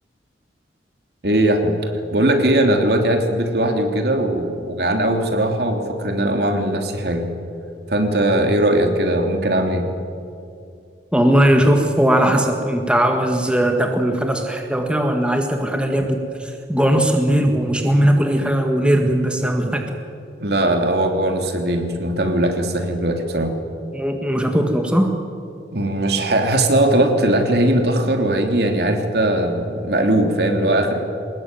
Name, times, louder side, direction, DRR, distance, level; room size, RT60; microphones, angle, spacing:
voice 1, 1.2-7.3 7.9-9.9 20.4-23.5 25.7-31.1, right 1 dB, 60° right, 4 dB, 3.1 m, -19 dB
voice 2, 11.1-19.9 23.9-25.2, right 1 dB, 5° right, 3 dB, 1.8 m, -18 dB
24.5 x 20.5 x 9.3 m, 2.5 s
head